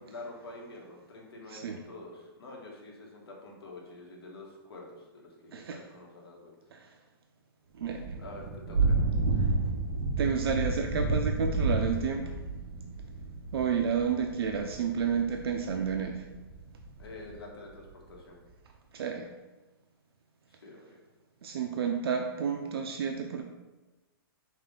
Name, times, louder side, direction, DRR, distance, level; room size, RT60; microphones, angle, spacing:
voice 1, 0.0-6.5 8.2-9.5 17.0-18.4 20.5-21.0, left 2 dB, 80° left, -1 dB, 1.3 m, -47 dB
voice 2, 1.5-1.8 5.5-5.8 6.7-6.9 7.7-8.0 9.4-9.5 10.2-12.5 13.5-16.3 18.9-19.3 21.4-23.4, right 6 dB, 80° right, 3 dB, 0.4 m, -31 dB
Thunder / Rain, 7.8-17.3, right 3 dB, 60° right, 0.8 m, -31 dB
5.8 x 2.4 x 3.6 m, 1.1 s
hypercardioid pair, 175°, 13 cm